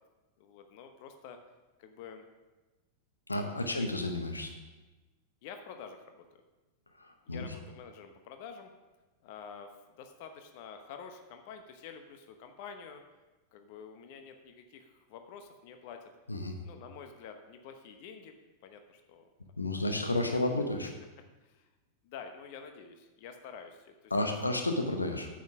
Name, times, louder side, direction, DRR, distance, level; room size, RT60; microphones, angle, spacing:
voice 1, 0.4-1.4 1.8-2.2 3.6-3.9 5.4-6.4 7.2-8.7 9.2-13.0 13.5-16.1 16.6-18.3 18.6-19.3 19.8-20.6 21.4-21.7 22.0-24.1 24.6-24.7, left 6 dB, 50° left, 6 dB, 0.9 m, -48 dB
voice 2, 3.3-4.5 7.0-7.4 16.3-16.6 19.6-20.9 24.1-25.3, left 2 dB, 80° left, 5 dB, 1.0 m, -31 dB
9.4 x 7.4 x 6.1 m, 1.2 s
figure-of-eight pair, 90°, 0 cm